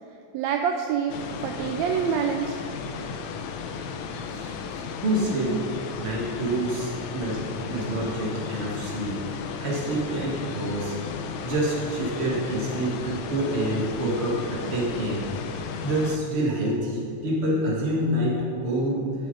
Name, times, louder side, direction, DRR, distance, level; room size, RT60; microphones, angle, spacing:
voice 1, 0.3-2.6, right 7 dB, 80° right, 4 dB, 1.6 m, -26 dB
sound 1, 1.1-16.2, left 6 dB, 75° left, 1.7 m, -35 dB
voice 2, 5.0-5.6 5.9-9.2 9.6-11.0 11.4-15.3 15.8-19.3, right 1 dB, 25° right, -4 dB, 1.5 m, -27 dB
12.0 x 9.2 x 3.9 m, 2.4 s
omnidirectional pair, 3.6 m